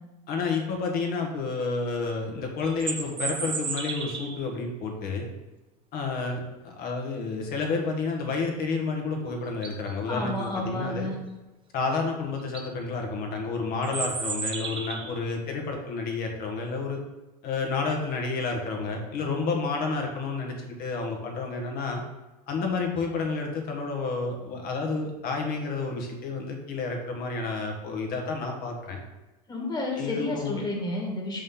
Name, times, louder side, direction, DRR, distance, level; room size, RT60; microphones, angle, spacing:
voice 1, 0.3-5.3 5.9-11.1 11.7-17.0 17.4-22.0 22.5-29.0 29.9-30.6, left 4 dB, 45° left, 2 dB, 1.6 m, -30 dB
sound 1, 2.6-4.5 9.0-9.1 9.5-9.9 11.9-12.0 12.4-12.7 13.8-15.2, right 5 dB, 25° right, 0.9 m, -33 dB
voice 2, 10.1-11.1 29.5-31.4, left 2 dB, 20° left, -1 dB, 2.0 m, -31 dB
5.4 x 5.3 x 3.8 m, 1.1 s
hypercardioid pair, 100°, 20 cm